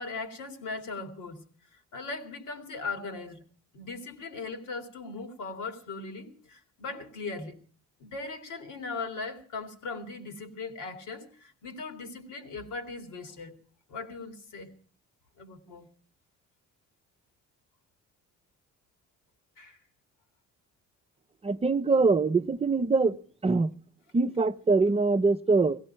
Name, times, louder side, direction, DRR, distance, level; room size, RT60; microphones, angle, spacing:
voice 1, 0.0-1.4 1.7-3.4 3.7-7.6 8.0-13.6 13.9-14.7 15.4-15.9 19.6-19.8, left 3 dB, 80° left, 2.6 m, -39 dB
voice 2, 21.4-23.2 23.4-23.7 24.1-25.8, right 3 dB, 20° right, 0.6 m, -23 dB
18.0 x 16.0 x 4.4 m
cardioid pair, 90°, 30 cm